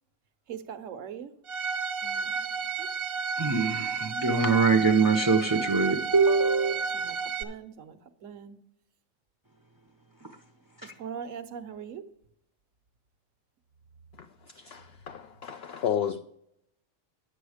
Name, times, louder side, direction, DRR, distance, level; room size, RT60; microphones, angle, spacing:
voice 1, 0.5-1.3 2.0-2.9 6.9-8.6 10.8-12.0, right 8 dB, 70° right, 1.2 m, -41 dB
Bowed string instrument, 1.5-7.4, right 5 dB, 50° right, 1.0 m, -32 dB
voice 2, 3.4-7.2 10.1-10.9, right 4 dB, 20° right, 0.6 m, -25 dB
voice 3, 14.2-16.2, left 9 dB, 60° left, 0.7 m, -33 dB
10.5 x 7.8 x 4.9 m
omnidirectional pair, 1.4 m